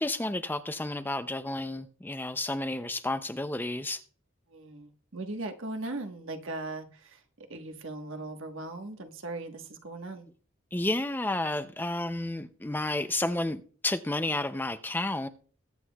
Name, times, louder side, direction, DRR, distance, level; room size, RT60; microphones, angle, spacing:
voice 1, 0.0-4.0 10.7-15.3, left 2 dB, 10° left, 0.4 m, -31 dB
voice 2, 4.5-10.3, right 2 dB, 70° right, 1.3 m, -39 dB
21.5 x 8.2 x 2.3 m
head